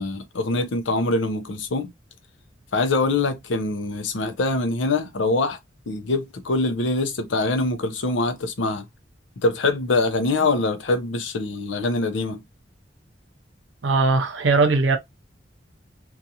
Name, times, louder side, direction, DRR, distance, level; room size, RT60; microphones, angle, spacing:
voice 1, 0.0-1.9 2.7-5.6 5.9-8.9 9.4-12.4, left 2 dB, 85° left, 0.6 m, -24 dB
voice 2, 13.8-15.0, right 3 dB, 80° right, 0.5 m, -19 dB
2.5 x 2.4 x 2.7 m
head